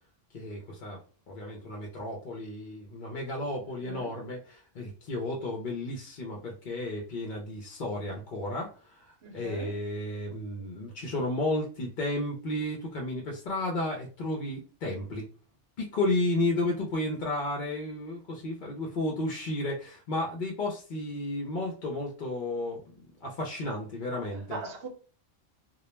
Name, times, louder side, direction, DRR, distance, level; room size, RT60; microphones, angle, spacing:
voice 1, 0.3-1.0 1.3-15.3 15.8-22.8 23.2-24.6, left 2 dB, 55° left, 0.6 m, -33 dB
voice 2, 3.8-4.2 9.2-9.7 24.5-24.9, right 3 dB, 65° right, 0.9 m, -40 dB
2.3 x 2.1 x 3.0 m
omnidirectional pair, 1.3 m